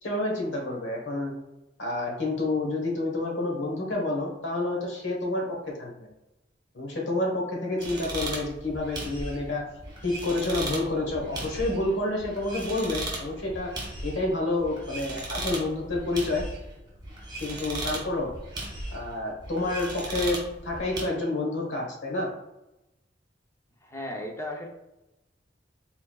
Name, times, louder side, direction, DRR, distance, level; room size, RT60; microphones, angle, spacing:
voice 1, 0.0-1.3 1.8-5.4 5.8-5.9 6.7-9.6 10.0-13.7 14.0-16.4 17.4-18.3 18.9-22.3, left 2 dB, 80° left, 0 dB, 1.2 m, -29 dB
sound 1, 7.8-21.0, right 1 dB, 25° right, 1.5 m, -37 dB
voice 2, 23.8-24.7, left 1 dB, 15° left, 0 dB, 0.7 m, -35 dB
4.3 x 4.0 x 2.3 m, 0.94 s
head